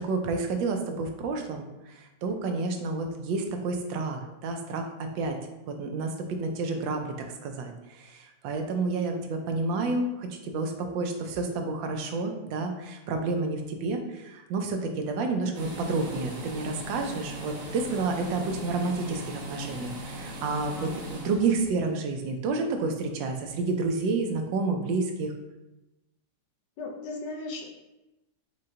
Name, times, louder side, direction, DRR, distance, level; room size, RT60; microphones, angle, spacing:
voice 1, 0.0-5.4 5.7-7.1 7.4-25.3, right 3 dB, 85° right, 4 dB, 1.3 m, -30 dB
sound 1, 15.5-21.7, right 1 dB, 60° right, 1.0 m, -39 dB
voice 2, 26.8-27.7, left 3 dB, 75° left, 0 dB, 1.3 m, -37 dB
5.6 x 2.2 x 3.7 m, 0.99 s
omnidirectional pair, 2.0 m